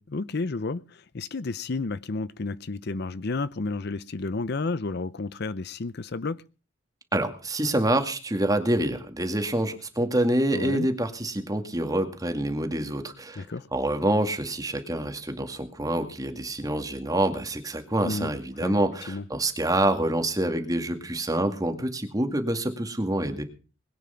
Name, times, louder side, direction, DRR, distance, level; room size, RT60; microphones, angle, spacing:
voice 1, 0.1-6.4 10.5-10.9 13.4-13.7 18.0-18.3 18.6-18.8 19.1-19.2, left 3 dB, 55° left, 0.7 m, -31 dB
voice 2, 7.1-13.5 13.7-23.4, right 1 dB, 20° right, 2.1 m, -26 dB
21.0 x 9.5 x 5.7 m
head